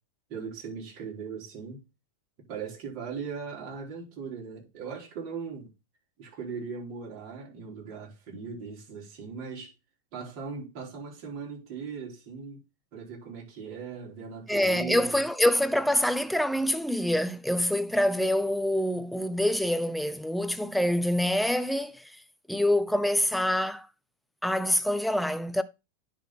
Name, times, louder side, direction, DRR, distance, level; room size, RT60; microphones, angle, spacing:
voice 1, 0.3-1.8 2.5-5.7 6.2-9.7 10.1-12.6 12.9-15.3, right 5 dB, 50° right, 4.5 m, -39 dB
voice 2, 14.5-22.1 22.5-23.9 24.4-25.6, left 1 dB, ahead, 0.6 m, -26 dB
10.0 x 4.1 x 4.3 m
hypercardioid pair, 100°, 0 cm